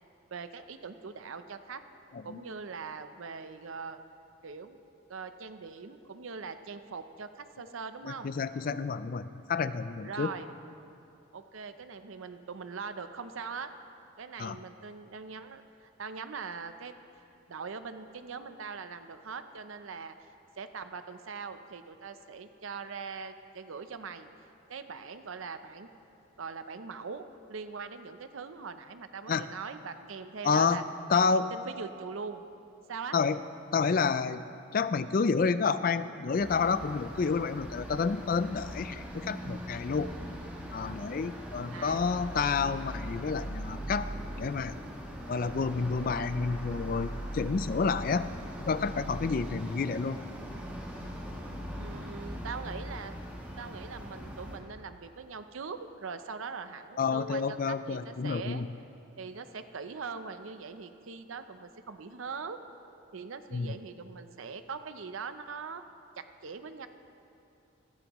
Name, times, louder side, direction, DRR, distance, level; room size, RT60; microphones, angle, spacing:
voice 1, 0.3-1.8 2.2-4.0 4.4-4.8 5.1-8.3 10.0-10.6 11.3-13.7 14.2-16.9 17.5-20.3 20.6-24.3 24.7-25.9 26.4-30.8 31.3-32.4 32.9-33.2 41.7-42.1 51.8-53.2 53.6-58.6 59.2-62.6 63.1-65.8 66.2-66.9, right 5 dB, 75° right, 10 dB, 0.6 m, -41 dB
voice 2, 8.0-10.3 14.4-14.6 29.3-29.5 30.4-30.8 31.1-31.5 33.1-33.4 33.7-34.4 34.7-40.1 40.7-44.1 44.4-44.8 45.3-50.2 57.0-58.7 63.5-63.7, left 5 dB, 45° left, 13 dB, 0.3 m, -29 dB
sound 1, 36.4-54.6, equal, 5° right, 1.3 m, -40 dB
16.5 x 14.0 x 3.0 m, 2.7 s
head